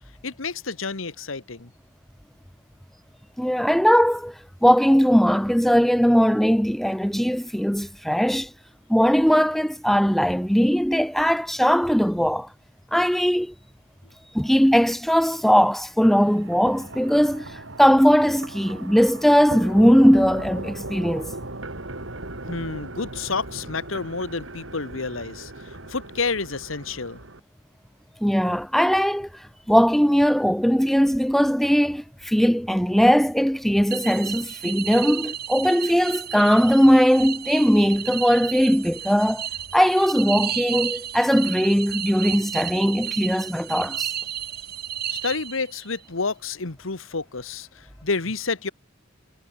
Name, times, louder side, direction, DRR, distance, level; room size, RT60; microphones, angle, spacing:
voice 1, 0.2-1.7 22.5-27.2 45.1-48.7, left 4 dB, 80° left, 1.5 m, -29 dB
voice 2, 3.4-4.3 4.6-8.5 8.9-12.5 12.9-13.5 14.3-21.3 28.2-29.3 29.7-39.5 39.7-44.1, equal, ahead, 0.9 m, -19 dB
sound 1, 16.0-27.4, right 2 dB, 70° right, 3.7 m, -38 dB
sound 2, 33.9-45.9, right 10 dB, 50° right, 5.1 m, -32 dB
head